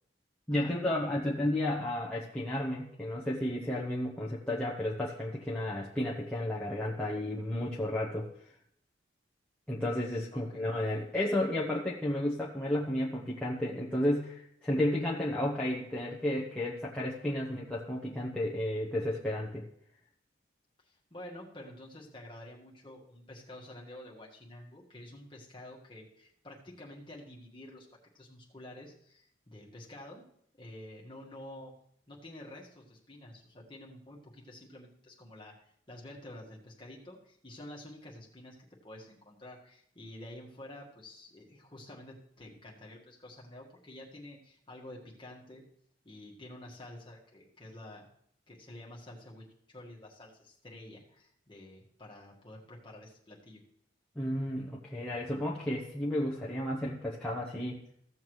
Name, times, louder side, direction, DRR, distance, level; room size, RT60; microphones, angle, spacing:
voice 1, 0.5-8.3 9.7-19.7 54.1-57.8, left 1 dB, 5° left, -5 dB, 0.9 m, -32 dB
voice 2, 10.3-10.6 20.8-27.9 28.1-30.2 30.6-31.7 32.1-38.5 38.8-45.6 46.0-48.1 48.5-53.6, left 1 dB, 25° left, -3 dB, 1.6 m, -49 dB
15.5 x 7.1 x 3.1 m, 0.67 s
head